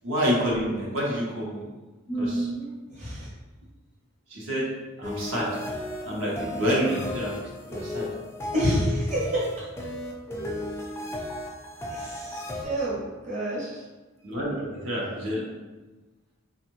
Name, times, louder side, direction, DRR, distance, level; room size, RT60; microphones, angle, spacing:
voice 1, 0.0-1.6 2.2-2.5 4.3-4.7 5.0-5.5 6.1-8.1 14.2-15.4, equal, 75° right, -5 dB, 0.9 m, -28 dB
voice 2, 2.1-3.3 8.5-9.7 11.9-13.8, equal, 35° right, -7 dB, 0.8 m, -28 dB
sound 1, 5.0-12.6, left 1 dB, 10° left, 0.4 m, -35 dB
3.3 x 2.4 x 3.1 m, 1.2 s
head